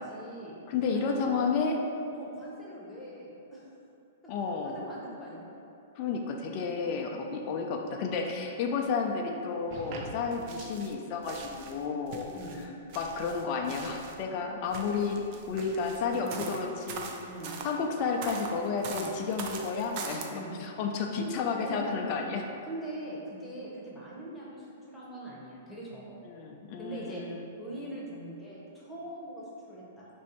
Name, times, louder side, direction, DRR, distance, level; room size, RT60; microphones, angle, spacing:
voice 1, 0.0-0.6 0.9-1.4 2.1-3.7 4.6-5.5 6.9-7.2 10.3-10.6 12.3-12.7 16.2-16.5 17.3-17.6 18.9-19.1 20.3-20.5 21.2-21.4 21.6-22.1 22.6-26.3 26.8-27.2 27.6-30.1, right 1 dB, 10° left, -6 dB, 0.9 m, -42 dB
voice 2, 0.7-1.8 4.3-4.8 6.0-12.3 12.6-12.7 13.0-17.1 17.6-22.4 26.2-27.5, left 5 dB, 45° left, 1 dB, 0.4 m, -32 dB
sound 1, 9.7-11.0 11.2-14.2 14.7-17.7 18.2-20.3, right 4 dB, 45° right, 0.4 m, -42 dB
3.0 x 2.6 x 4.3 m, 2.7 s
hypercardioid pair, 125°, 0 cm